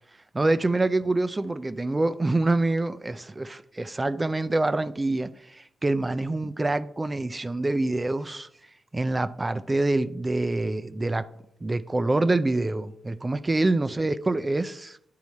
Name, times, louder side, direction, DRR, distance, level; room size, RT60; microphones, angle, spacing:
voice 1, 0.3-8.5 8.9-11.3 11.6-15.0, right 2 dB, 20° right, 0.4 m, -26 dB
10.5 x 4.7 x 4.2 m
cardioid pair, 85°, 0 cm